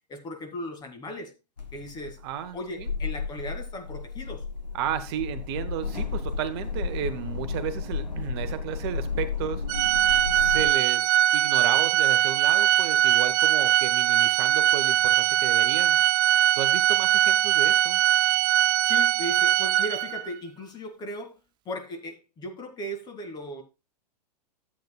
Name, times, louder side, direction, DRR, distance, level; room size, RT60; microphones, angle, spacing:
voice 1, 0.1-1.3 1.7-2.2 2.5-4.5 18.8-21.4 21.7-23.6, equal, 20° left, 2.2 m, -37 dB
sound 1, 1.6-10.7, left 5 dB, 80° left, 1.6 m, -33 dB
voice 2, 2.2-2.9 4.7-9.6 10.3-16.0 16.5-18.0, right 10 dB, 40° right, 1.0 m, -33 dB
Organ, 9.7-20.3, right 12 dB, 20° right, 0.5 m, -21 dB
13.0 x 8.4 x 2.3 m
figure-of-eight pair, 105°, 21 cm